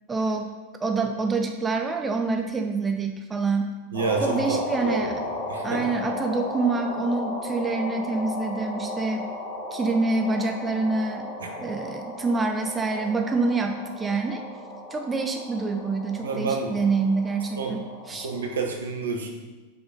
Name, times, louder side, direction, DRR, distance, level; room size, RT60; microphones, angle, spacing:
voice 1, 0.1-0.5 0.8-3.8 4.2-5.1 5.6-9.3 9.7-11.3 11.6-14.4 14.9-17.8 18.1-18.3, right 3 dB, 15° right, 4 dB, 0.5 m, -26 dB
sound 1, 3.9-18.7, left 1 dB, 55° left, 1.7 m, -35 dB
voice 2, 3.9-5.9 11.4-11.5 16.2-16.8 17.6-17.8 18.1-19.3, right 4 dB, 65° right, 2 dB, 0.9 m, -29 dB
5.8 x 4.0 x 5.1 m, 1.2 s
figure-of-eight pair, 90°, 0 cm